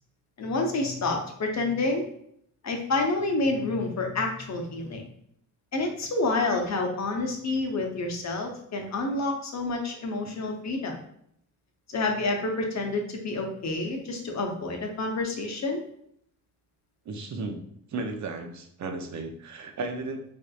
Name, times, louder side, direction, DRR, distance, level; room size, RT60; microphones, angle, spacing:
voice 1, 0.4-2.0 2.6-5.0 5.7-11.0 11.9-15.8, left 2 dB, 45° left, 2 dB, 0.8 m, -28 dB
voice 2, 17.1-17.6 17.9-20.2, right 3 dB, 50° right, 4 dB, 0.7 m, -34 dB
3.4 x 2.6 x 2.4 m, 0.69 s
supercardioid pair, 55°, 37 cm